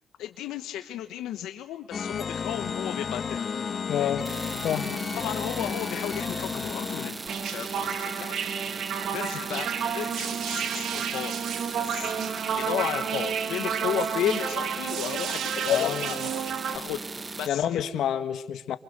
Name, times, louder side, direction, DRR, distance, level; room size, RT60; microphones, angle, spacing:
voice 1, 0.2-3.5 4.0-4.3 5.1-8.4 9.1-11.4 11.8-12.1 12.6-17.1 17.4-17.8, left 11 dB, 90° left, 1.2 m, -33 dB
sound 1, 1.9-7.1, left 6 dB, 45° left, 1.6 m, -32 dB
voice 2, 3.9-4.2 4.6-4.9 15.7-16.0 17.5-18.8, left 10 dB, 75° left, 1.6 m, -28 dB
sound 2, 4.2-17.5, right 3 dB, 25° right, 0.9 m, -38 dB
sound 3, 7.3-16.8, right 8 dB, 70° right, 1.8 m, -31 dB
28.0 x 24.5 x 6.8 m
cardioid pair, 100°, 0 cm